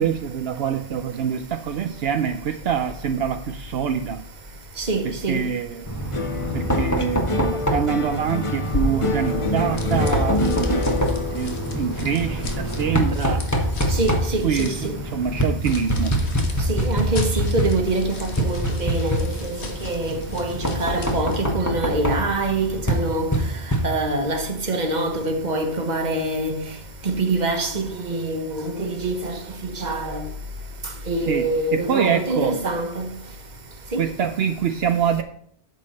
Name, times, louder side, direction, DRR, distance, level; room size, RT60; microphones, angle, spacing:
voice 1, 0.0-4.2 5.0-5.9 6.5-11.0 11.3-13.5 14.4-16.2 31.3-32.6 34.0-35.2, right 8 dB, 70° right, 0.9 m, -25 dB
voice 2, 4.8-5.4 13.9-14.7 16.7-23.3 23.8-26.6 27.0-29.4 29.6-30.2 31.1-33.1 33.9-34.0, right 2 dB, 45° right, 1.3 m, -25 dB
Knock, 5.9-24.3, equal, 15° left, 1.4 m, -26 dB
sound 1, 6.1-14.6 14.9-15.5, left 3 dB, 35° left, 0.8 m, -29 dB
sound 2, 8.6-21.5, left 3 dB, 85° left, 1.7 m, -34 dB
9.2 x 7.1 x 4.2 m
omnidirectional pair, 1.1 m